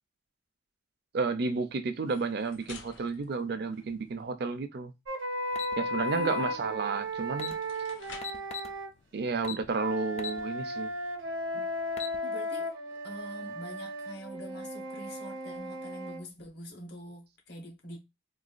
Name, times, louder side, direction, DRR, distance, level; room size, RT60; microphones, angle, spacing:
voice 1, 1.1-4.9 5.8-7.6 9.1-10.9 11.5-11.6, right 4 dB, 55° right, 0.4 m, -32 dB
sound 1, 1.9-4.3 6.8-6.9 7.3-8.5, left 5 dB, 75° left, 0.7 m, -51 dB
sound 2, 5.1-8.9 9.7-16.2, equal, 85° right, 0.7 m, -35 dB
sound 3, 5.5-5.7 7.0-7.1 7.3-7.6 8.2-8.7 9.4-9.7 10.2-10.4 10.8-10.9 11.7-12.2, left 8 dB, 35° left, 0.3 m, -38 dB
voice 2, 6.0-6.7 12.2-12.7 13.0-18.0, equal, 55° left, 1.0 m, -45 dB
3.9 x 2.2 x 2.4 m
head